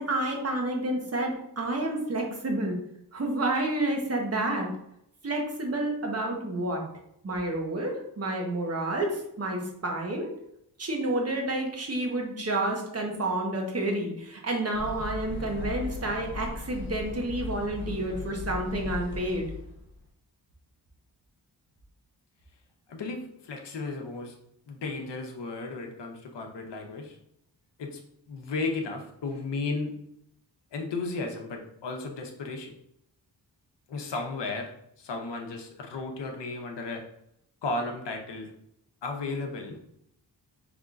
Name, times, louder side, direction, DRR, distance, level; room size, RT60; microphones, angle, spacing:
voice 1, 0.0-2.8 3.1-4.7 5.2-6.9 7.2-10.3 10.8-19.5, right 1 dB, 35° right, 1 dB, 1.0 m, -29 dB
sound 1, 14.7-20.1, left 3 dB, 25° left, 1.2 m, -37 dB
voice 2, 22.9-24.4 24.7-27.2 27.8-28.0 28.3-29.9 30.7-32.7 33.9-34.7 35.0-37.0 37.6-38.5 39.0-39.8, left 3 dB, 85° left, 3 dB, 0.9 m, -34 dB
5.1 x 3.5 x 2.4 m, 0.75 s
wide cardioid pair, 110°, 41 cm